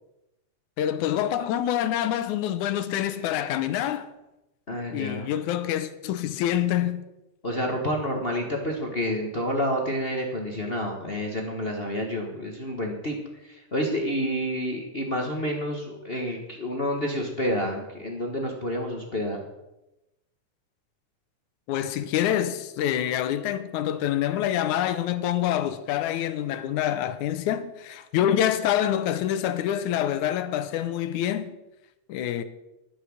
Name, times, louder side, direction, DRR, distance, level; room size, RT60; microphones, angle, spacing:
voice 1, 0.8-4.1 4.9-7.0 21.7-31.5 32.1-32.4, left 11 dB, 80° left, 2.1 m, -26 dB
voice 2, 4.7-5.3 7.4-19.4, equal, 55° left, 0.6 m, -29 dB
11.0 x 10.0 x 6.4 m
omnidirectional pair, 3.5 m